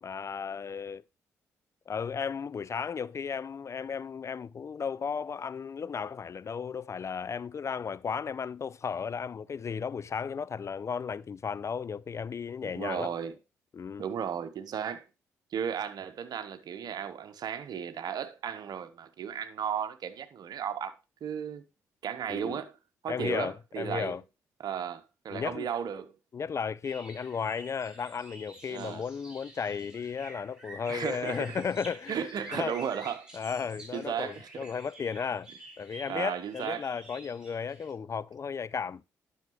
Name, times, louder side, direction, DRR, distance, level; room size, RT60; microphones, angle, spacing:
voice 1, 0.0-1.0 1.9-13.1 13.7-14.0 22.3-22.6 23.1-24.2 25.3-25.7 26.3-32.2 32.5-32.7 33.3-35.5 35.8-39.0, left 6 dB, 40° left, 0.4 m, -34 dB
voice 2, 12.6-13.3 14.0-15.1 15.5-20.9 21.2-21.6 22.0-22.7 23.0-24.2 24.6-26.1 28.7-29.0 30.9-31.6 32.1-33.3 33.9-34.7 36.1-36.9, right 8 dB, 55° right, 1.0 m, -35 dB
sound 1, 26.8-37.9, right 1 dB, 10° right, 4.3 m, -49 dB
10.5 x 6.5 x 3.1 m
hypercardioid pair, 45°, 8 cm